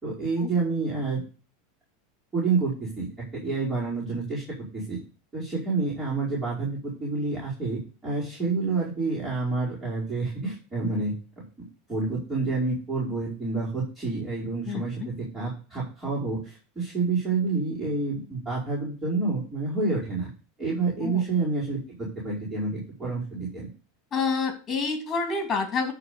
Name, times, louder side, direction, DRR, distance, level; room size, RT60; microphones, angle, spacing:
voice 1, 0.0-1.2 2.3-4.4 4.7-5.0 5.3-11.1 11.9-20.3 20.6-23.7, right 3 dB, 15° right, -9 dB, 5.0 m, -28 dB
voice 2, 24.1-25.9, left 4 dB, 25° left, 5 dB, 2.8 m, -27 dB
11.0 x 3.9 x 6.8 m, 0.35 s
supercardioid pair, 135°, 0 cm